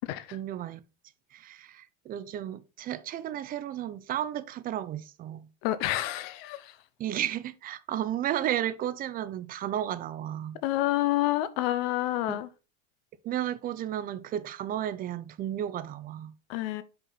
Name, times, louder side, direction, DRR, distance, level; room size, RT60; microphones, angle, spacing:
voice 1, 0.3-0.8 1.3-5.5 7.0-10.6 12.3-12.4 13.2-16.3, right 11 dB, 30° right, 0.5 m, -33 dB
voice 2, 5.6-6.7 10.6-12.5 16.5-16.8, left 15 dB, 70° left, 0.7 m, -28 dB
5.9 x 5.5 x 3.9 m
supercardioid pair, 140°, 31 cm